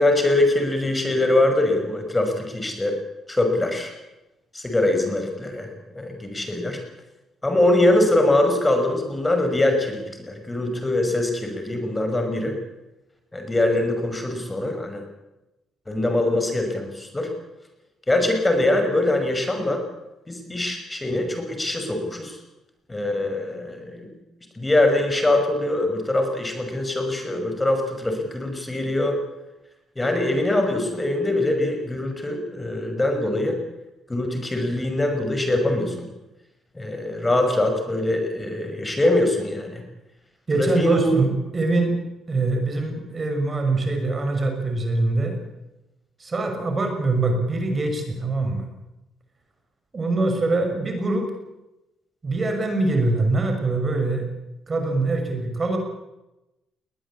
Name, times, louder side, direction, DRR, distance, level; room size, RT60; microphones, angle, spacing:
voice 1, 0.0-3.0 3.3-3.9 4.5-5.7 5.9-6.8 7.4-12.6 13.3-15.0 15.9-17.3 18.1-19.8 20.3-22.4 22.9-24.1 24.6-29.2 30.0-33.6 34.1-36.1 36.7-39.8 40.5-41.1, left 1 dB, 15° left, 5 dB, 5.9 m, -23 dB
voice 2, 40.5-42.0 42.3-45.4 46.2-48.6 49.9-51.2 52.2-54.3 54.7-55.8, right 2 dB, 30° right, 5 dB, 6.0 m, -23 dB
20.5 x 19.5 x 8.7 m, 0.96 s
cardioid pair, 90°, 0 cm